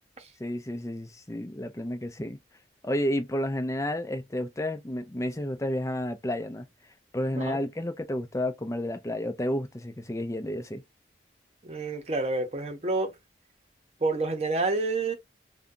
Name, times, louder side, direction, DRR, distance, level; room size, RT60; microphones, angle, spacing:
voice 1, 0.4-2.4 2.8-6.7 7.1-10.8, left 1 dB, 15° left, 0.5 m, -31 dB
voice 2, 11.6-13.1 14.0-15.1, right 3 dB, 35° right, 0.8 m, -28 dB
2.7 x 2.3 x 3.6 m
head